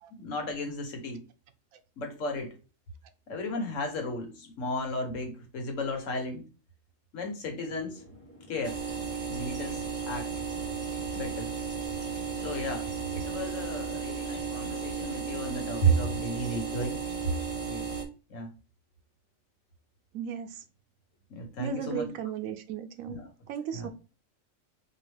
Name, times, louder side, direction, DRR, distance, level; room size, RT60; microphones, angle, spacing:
voice 1, 0.1-1.2 2.0-2.5 3.3-6.4 7.1-8.0 8.5-8.8 9.3-10.3 11.1-11.5 12.4-17.0 17.6-17.9 18.3-18.5 21.3-22.1 23.1-23.3 23.7-23.9, right 1 dB, 70° left, 4 dB, 1.4 m, -33 dB
sound 1, 7.7-14.1, equal, 10° left, 0.8 m, -53 dB
sound 2, 8.6-18.0, right 6 dB, 30° right, 0.8 m, -34 dB
voice 2, 20.1-20.6 21.6-23.2 23.5-23.9, right 9 dB, 85° right, 7 dB, 1.0 m, -35 dB
4.6 x 2.5 x 3.4 m, 0.34 s
omnidirectional pair, 1.4 m